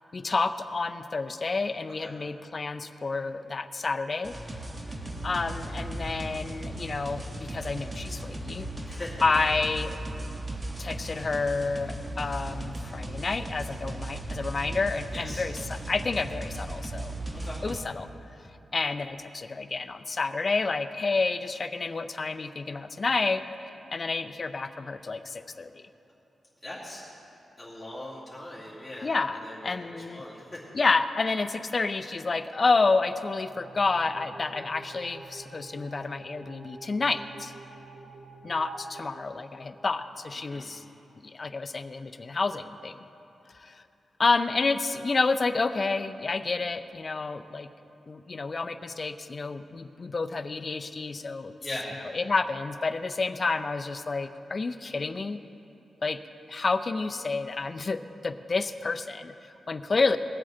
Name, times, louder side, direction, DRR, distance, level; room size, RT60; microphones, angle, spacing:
voice 1, 0.1-4.3 5.2-8.7 8.9-10.0 10.8-17.1 17.6-18.1 18.7-23.4 23.9-25.8 29.0-30.2 30.7-37.5 38.4-40.8 41.2-43.0 43.5-43.8 44.2-47.7 48.1-51.5 52.1-55.4 56.0-56.2 56.5-60.2, left 3 dB, 40° left, 10 dB, 0.5 m, -29 dB
sound 1, 4.2-17.8, right 1 dB, 20° right, 1.1 m, -37 dB
voice 2, 8.8-9.2 15.1-15.4 17.3-17.6 26.6-27.0 27.6-30.4 40.4-40.7 51.6-52.0, left 1 dB, 10° left, -9 dB, 2.4 m, -40 dB
sound 2, 33.5-40.0, right 3 dB, 60° right, 1.8 m, -47 dB
19.5 x 7.7 x 3.8 m, 2.9 s
wide cardioid pair, 110°, 0 cm